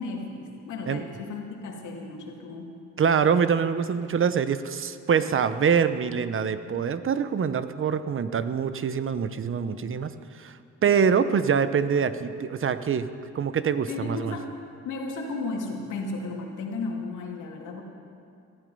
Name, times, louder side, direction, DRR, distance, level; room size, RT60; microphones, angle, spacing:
voice 1, 0.0-2.7 13.9-14.5 14.8-17.8, left 3 dB, 80° left, 0 dB, 2.5 m, -34 dB
voice 2, 3.0-10.1 10.4-10.5 10.8-13.1 13.3-14.3, right 6 dB, 45° right, 12 dB, 0.9 m, -24 dB
19.0 x 12.5 x 5.5 m, 2.4 s
cardioid pair, 90°, 30 cm